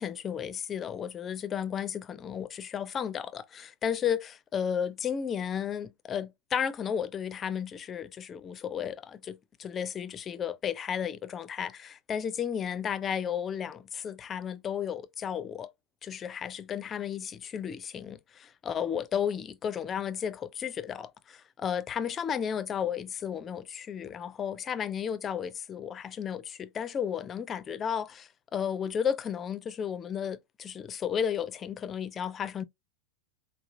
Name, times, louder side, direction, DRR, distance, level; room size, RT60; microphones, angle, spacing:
voice 1, 0.0-15.7 16.0-32.6, left 8 dB, 25° left, 0.5 m, -33 dB
5.0 x 2.3 x 2.6 m
figure-of-eight pair, 90°, 0 cm